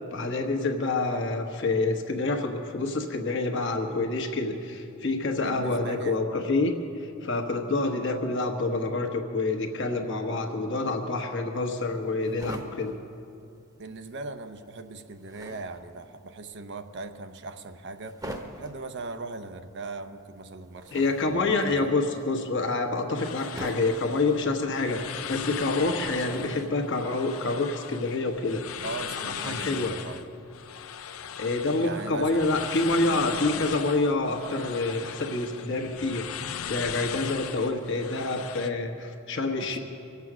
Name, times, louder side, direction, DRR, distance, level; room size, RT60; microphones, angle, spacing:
voice 1, 0.1-12.9 20.9-28.6 29.1-29.9 31.4-36.3 36.7-39.8, left 3 dB, 60° left, 4 dB, 1.3 m, -27 dB
voice 2, 5.4-6.2 13.8-18.3 18.6-21.9 28.8-30.3 31.8-32.4 39.6-39.8, right 3 dB, 55° right, 8 dB, 0.7 m, -39 dB
sound 1, 11.6-14.1 14.4-27.0, right 1 dB, 20° right, 1.0 m, -44 dB
sound 2, 23.2-38.7, left 8 dB, 80° left, 0.6 m, -38 dB
24.0 x 8.2 x 6.2 m, 2.6 s
head